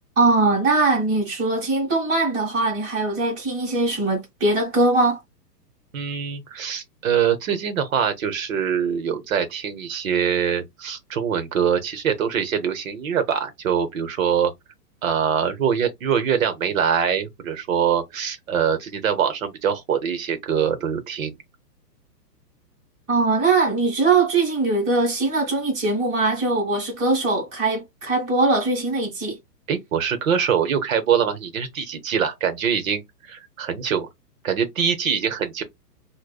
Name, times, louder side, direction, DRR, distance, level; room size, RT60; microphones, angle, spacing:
voice 1, 0.2-5.2 23.1-29.4, right 3 dB, 15° right, 1.1 m, -21 dB
voice 2, 5.9-14.5 15.0-21.3 29.7-34.1 34.4-35.6, right 7 dB, 55° right, 0.9 m, -23 dB
4.8 x 2.2 x 2.3 m
hypercardioid pair, 175°, 49 cm